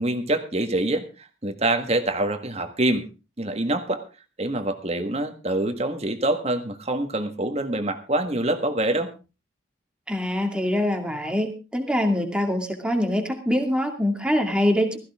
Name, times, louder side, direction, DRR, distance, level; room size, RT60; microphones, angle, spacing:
voice 1, 0.0-3.1 3.4-4.0 4.4-9.1, right 1 dB, 35° right, 7 dB, 1.6 m, -25 dB
voice 2, 10.1-15.0, left 1 dB, 5° right, 3 dB, 2.3 m, -24 dB
16.5 x 14.5 x 3.6 m, 0.31 s
head